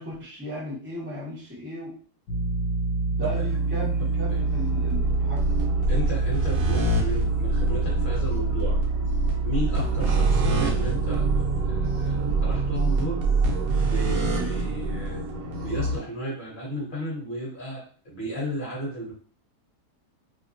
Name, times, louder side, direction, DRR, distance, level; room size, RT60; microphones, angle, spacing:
voice 1, 0.0-2.0 3.1-5.4 14.3-14.6, equal, 10° right, -5 dB, 0.6 m, -36 dB
sound 1, 2.3-12.7, right 4 dB, 75° left, 1.1 m, -27 dB
sound 2, 3.3-16.0, right 2 dB, 65° right, 1.0 m, -26 dB
voice 2, 4.0-4.4 5.9-8.8 9.4-13.2 13.8-19.1, equal, 40° left, -4 dB, 0.9 m, -34 dB
2.9 x 2.3 x 2.5 m, 0.43 s
omnidirectional pair, 1.8 m